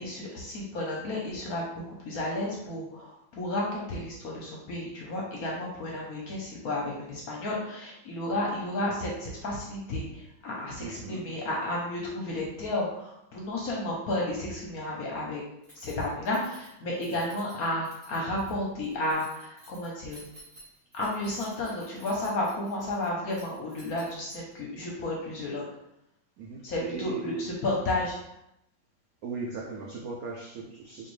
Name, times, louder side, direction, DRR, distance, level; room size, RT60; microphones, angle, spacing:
voice 1, 0.0-15.4 15.7-20.2 20.9-25.7 26.6-28.2, left 1 dB, 65° left, -3 dB, 1.0 m, -32 dB
voice 2, 10.8-11.3 17.2-17.4 26.4-27.3 29.2-31.1, right 4 dB, 85° right, -2 dB, 0.8 m, -38 dB
Keys jangling, 15.6-24.6, right 1 dB, 25° right, 0.9 m, -53 dB
4.4 x 2.6 x 3.1 m, 0.83 s
omnidirectional pair, 2.2 m